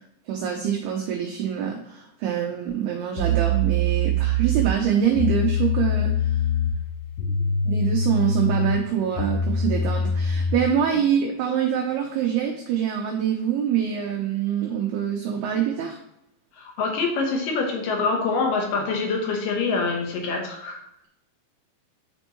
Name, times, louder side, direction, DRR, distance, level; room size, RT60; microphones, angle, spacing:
voice 1, 0.3-6.4 7.7-16.0, right 8 dB, 90° right, 1 dB, 2.2 m, -25 dB
sound 1, 2.7-2.8 3.2-10.7, equal, 90° left, 3.6 m, -24 dB
voice 2, 7.2-7.5 16.6-20.8, left 4 dB, 70° left, 1 dB, 2.1 m, -25 dB
9.8 x 4.4 x 3.1 m, 0.79 s
omnidirectional pair, 5.6 m